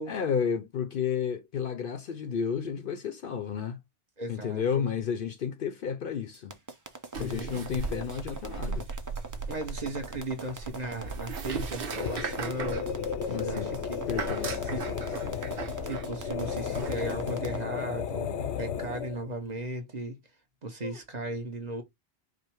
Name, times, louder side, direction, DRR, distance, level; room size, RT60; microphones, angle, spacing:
voice 1, 0.1-3.8 4.3-6.6 7.1-8.9 13.3-13.7 14.1-15.4 20.8-20.9, left 7 dB, 60° left, 0.7 m, -32 dB
voice 2, 4.2-4.8 7.1-7.6 9.5-12.9 13.4-14.1 14.7-14.9 15.2-15.3 15.8-20.2 20.6-21.8, right 2 dB, 40° right, 1.1 m, -36 dB
sound 1, 6.3-17.6, right 3 dB, 20° right, 0.6 m, -41 dB
sound 2, 7.1-17.1, right 4 dB, 60° right, 0.9 m, -38 dB
sound 3, 11.9-19.3, left 8 dB, 85° left, 0.9 m, -34 dB
5.1 x 2.1 x 4.4 m
omnidirectional pair, 1.1 m